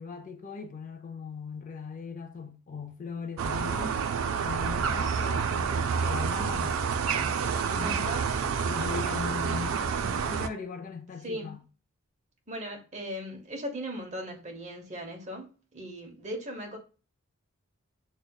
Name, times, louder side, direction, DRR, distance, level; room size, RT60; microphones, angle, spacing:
voice 1, 0.0-4.0 4.4-8.1 8.7-11.6, left 5 dB, 35° left, 0.4 m, -39 dB
sound 1, 3.4-10.5, right 6 dB, 65° right, 0.3 m, -28 dB
voice 2, 4.9-5.3 7.8-8.3 11.2-11.6 12.5-16.8, equal, 35° right, 0.8 m, -38 dB
6.2 x 2.1 x 2.3 m
head